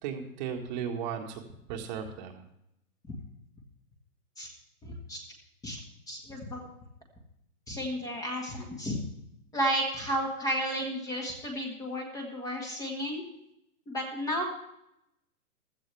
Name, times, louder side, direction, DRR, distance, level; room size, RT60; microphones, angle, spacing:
voice 1, 0.0-1.4 1.7-2.4, right 7 dB, 30° right, 3 dB, 1.8 m, -35 dB
voice 2, 4.8-5.2 5.6-5.8 6.1-6.7 7.7-9.0 9.5-13.2 13.9-14.6, equal, 5° left, 1 dB, 1.6 m, -32 dB
16.0 x 13.5 x 3.4 m, 0.80 s
hypercardioid pair, 150°, 45 cm